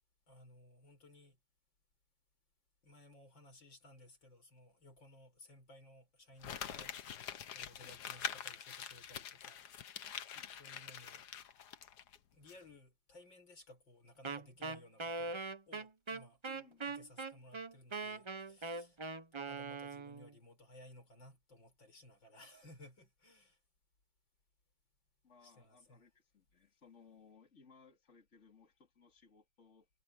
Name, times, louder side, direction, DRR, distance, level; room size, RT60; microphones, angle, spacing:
voice 1, 0.3-1.4 2.8-7.0 7.5-9.8 10.6-11.2 12.3-16.4 16.8-19.0 19.3-23.6 25.4-26.0, left 1 dB, 80° left, 6.7 m, -59 dB
Crumpling crinkling, 6.4-12.2 12.5-12.6, left 9 dB, 65° left, 1.6 m, -45 dB
voice 2, 10.3-10.6 16.4-17.0 25.2-29.9, left 5 dB, 40° left, 3.3 m, -64 dB
Wind instrument woodwind instrument, 14.2-20.3, right 3 dB, 40° right, 0.4 m, -42 dB
omnidirectional pair, 2.0 m